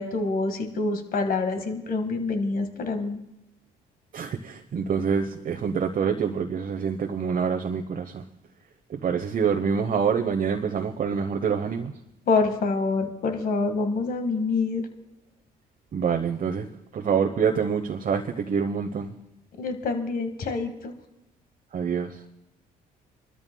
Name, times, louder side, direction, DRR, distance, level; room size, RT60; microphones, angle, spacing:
voice 1, 0.0-3.2 12.3-14.9 19.6-20.9, left 3 dB, 60° left, 6 dB, 1.7 m, -26 dB
voice 2, 4.1-8.2 8.9-11.9 15.9-16.7 16.9-19.1 21.7-22.2, right 6 dB, 50° right, 4 dB, 0.9 m, -26 dB
27.5 x 13.0 x 2.3 m, 0.86 s
supercardioid pair, 70°, 17 cm